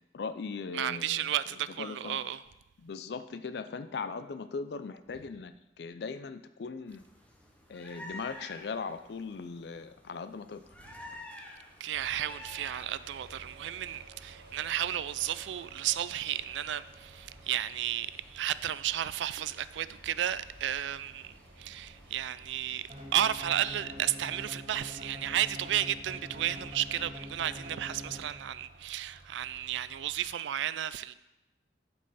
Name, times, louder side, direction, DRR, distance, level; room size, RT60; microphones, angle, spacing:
voice 1, 0.1-1.3 1.8-2.2 2.8-7.0 7.7-10.6, left 4 dB, 60° left, 0.4 m, -39 dB
voice 2, 0.7-2.4 11.8-31.1, right 11 dB, 75° right, 0.3 m, -33 dB
sound 1, 6.9-23.8, left 1 dB, 10° left, 0.8 m, -53 dB
sound 2, 11.9-30.4, right 2 dB, 55° right, 1.0 m, -55 dB
sound 3, 22.9-28.7, equal, 30° right, 1.6 m, -45 dB
11.0 x 5.4 x 4.1 m
head